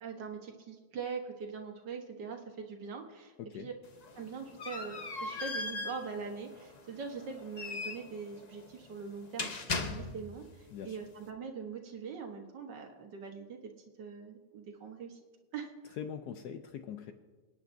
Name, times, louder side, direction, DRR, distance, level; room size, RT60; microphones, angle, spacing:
voice 1, 0.0-3.3 3.6-3.7 4.2-13.6 14.0-15.2 15.5-16.0, right 5 dB, 85° right, 2 dB, 1.9 m, -42 dB
voice 2, 3.4-3.7 10.7-11.0 16.0-17.1, left 8 dB, 75° left, 7 dB, 1.2 m, -42 dB
sound 1, 3.8-10.5, left 3 dB, 40° left, 0.6 m, -39 dB
27.5 x 9.5 x 2.7 m, 1.4 s
omnidirectional pair, 1.8 m